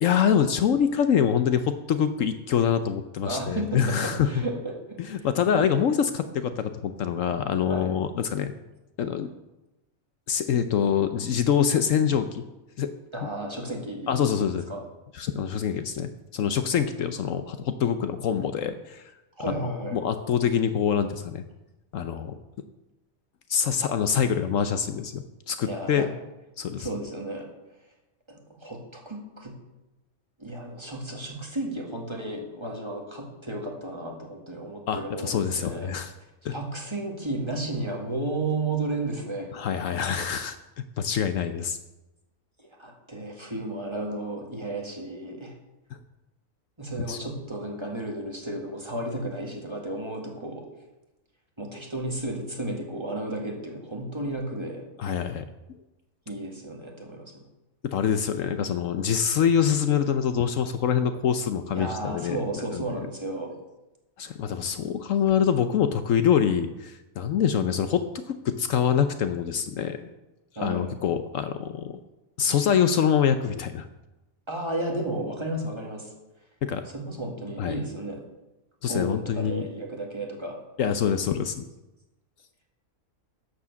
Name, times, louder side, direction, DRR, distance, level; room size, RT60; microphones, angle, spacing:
voice 1, 0.0-4.3 5.0-8.5 9.0-9.3 10.3-12.4 12.8-12.9 13.2-13.3 14.1-14.6 15.1-19.0 19.5-21.4 21.9-22.3 23.5-26.1 26.6-26.9 34.9-36.1 36.4-36.5 39.5-40.6 41.0-41.8 47.1-47.2 55.0-55.5 57.9-62.4 62.7-62.9 64.2-70.1 70.6-72.0 72.4-73.9 76.6-76.8 77.6-77.8 78.8-79.6 80.8-81.7, left 8 dB, 70° left, 10 dB, 1.0 m, -25 dB
voice 2, 3.3-4.7 5.2-5.3 7.7-7.9 13.1-14.2 14.7-14.8 19.4-20.0 25.6-26.1 26.8-27.5 28.3-29.5 30.4-35.9 36.5-39.5 42.6-45.5 46.8-50.6 51.6-54.8 56.3-57.4 61.7-63.6 70.6-70.9 74.5-76.1 76.9-78.2 78.9-80.6, right 2 dB, 20° right, 0 dB, 1.9 m, -33 dB
11.5 x 7.3 x 7.0 m, 1.0 s
omnidirectional pair, 1.5 m